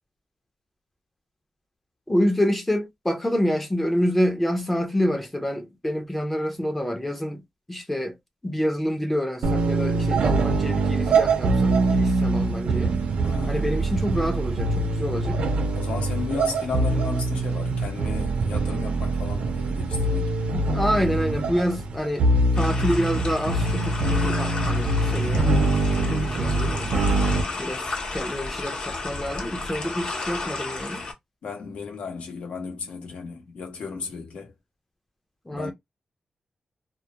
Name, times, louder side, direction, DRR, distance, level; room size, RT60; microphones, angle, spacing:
voice 1, 2.1-7.4 7.7-8.2 8.4-13.0 13.5-15.4 20.5-22.3 22.6-25.5 26.0-26.9 27.6-27.9 28.1-31.1 35.5-35.7, equal, 10° left, 0.4 m, -27 dB
sound 1, 9.4-27.4, right 2 dB, 75° right, 0.4 m, -23 dB
voice 2, 13.2-13.9 15.7-20.4 27.2-27.7 31.4-34.5 35.5-35.7, left 5 dB, 85° left, 0.8 m, -34 dB
sound 2, 22.5-31.1, left 3 dB, 50° left, 0.7 m, -33 dB
2.2 x 2.0 x 2.8 m
wide cardioid pair, 165°, 2 cm